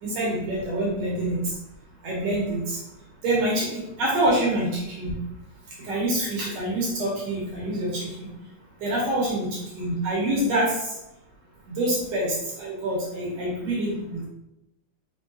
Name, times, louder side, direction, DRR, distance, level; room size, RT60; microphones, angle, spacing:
voice 1, 0.0-1.5 2.0-2.8 3.2-5.2 5.8-8.3 8.8-11.0 11.7-14.2, right 1 dB, 70° right, -5 dB, 1.9 m, -26 dB
5.4 x 3.3 x 2.5 m, 0.88 s
omnidirectional pair, 3.5 m